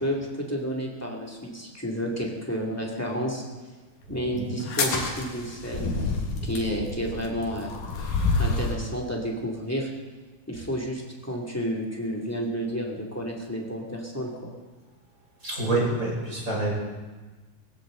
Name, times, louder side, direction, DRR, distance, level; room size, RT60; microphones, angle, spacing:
voice 1, 0.0-3.4 4.1-6.1 6.4-7.7 8.4-9.9 10.5-14.5, equal, 5° left, -2 dB, 2.0 m, -31 dB
sound 1, 4.6-8.8, left 3 dB, 80° left, 3.3 m, -28 dB
voice 2, 15.4-16.7, right 2 dB, 25° right, -4 dB, 5.7 m, -27 dB
19.0 x 16.0 x 3.9 m, 1.3 s
omnidirectional pair, 3.5 m